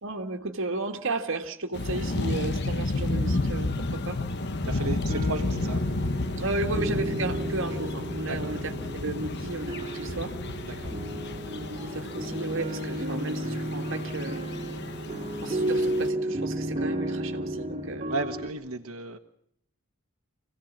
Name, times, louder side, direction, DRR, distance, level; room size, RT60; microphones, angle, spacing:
voice 1, 0.0-4.2 6.4-8.7 9.0-10.4 11.4-14.5 15.4-18.1, right 2 dB, 60° right, 1.9 m, -34 dB
sound 1, 1.7-16.1, left 2 dB, 55° left, 1.2 m, -32 dB
voice 2, 4.6-5.8 8.2-8.6 10.6-10.9 18.1-19.2, right 3 dB, 90° right, 1.3 m, -34 dB
sound 2, 4.9-18.5, right 1 dB, 30° right, 2.8 m, -33 dB
25.5 x 17.0 x 7.4 m
head